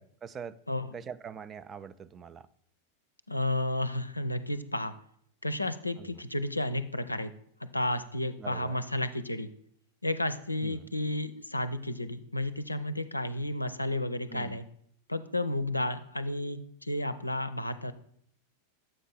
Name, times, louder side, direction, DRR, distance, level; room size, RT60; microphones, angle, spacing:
voice 1, 0.0-0.6 0.9-2.5 6.0-6.2 8.4-8.8 10.6-10.9 14.3-14.6, right 7 dB, 25° right, 14 dB, 0.3 m, -43 dB
voice 2, 3.3-4.9 5.4-7.3 7.7-9.5 10.0-14.6 15.1-17.9, left 1 dB, 85° left, 11 dB, 0.4 m, -32 dB
7.7 x 5.4 x 4.1 m, 0.66 s
figure-of-eight pair, 90°, 0 cm